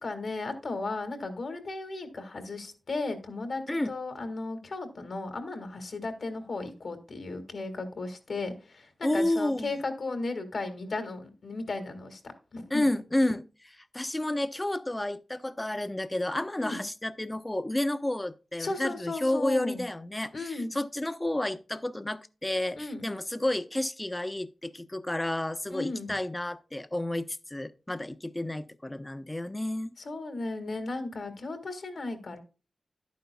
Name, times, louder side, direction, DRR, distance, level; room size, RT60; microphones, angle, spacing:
voice 1, 0.0-12.2 12.5-12.8 16.6-16.8 18.6-19.8 20.3-20.7 22.8-23.1 25.7-26.1 30.0-32.4, left 3 dB, 70° left, 2.0 m, -35 dB
voice 2, 9.0-9.7 12.7-29.9, left 1 dB, 20° left, 0.7 m, -31 dB
11.0 x 9.4 x 2.3 m
cardioid pair, 50°, 0 cm